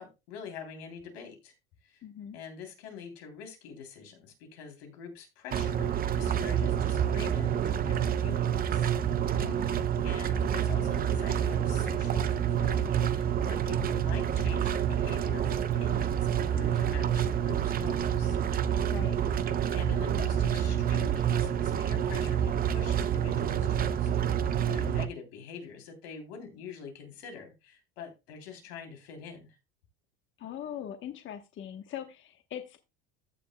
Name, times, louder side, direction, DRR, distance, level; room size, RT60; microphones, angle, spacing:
voice 1, 0.0-1.5 1.8-2.0 2.3-8.9 9.6-9.7 10.0-18.4 19.7-29.6, left 6 dB, 90° left, 4 dB, 3.3 m, -45 dB
voice 2, 2.0-2.4 9.3-9.8 18.9-19.2 30.4-32.8, left 9 dB, 40° left, 7 dB, 1.1 m, -41 dB
sound 1, 5.5-25.1, right 9 dB, 30° right, 0.6 m, -28 dB
14.5 x 7.0 x 2.2 m, 0.25 s
supercardioid pair, 115°, 30 cm